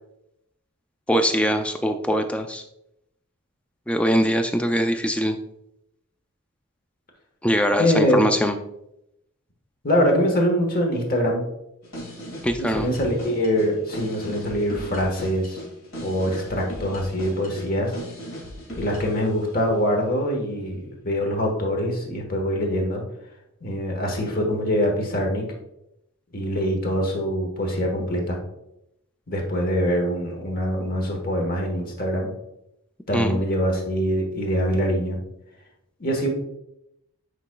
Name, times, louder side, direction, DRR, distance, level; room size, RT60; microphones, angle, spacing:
voice 1, 1.1-2.6 3.9-5.4 7.4-8.6 12.4-12.9 33.1-33.4, equal, 5° left, 6 dB, 0.3 m, -22 dB
voice 2, 7.8-8.3 9.8-11.4 12.6-15.6 16.0-17.9 18.7-23.0 23.6-25.4 26.3-28.4 29.3-32.3 33.1-35.2 36.0-36.3, equal, 40° left, 1 dB, 1.2 m, -24 dB
sound 1, 11.8-19.3, equal, 65° left, 2.1 m, -37 dB
8.9 x 4.8 x 2.2 m, 0.83 s
head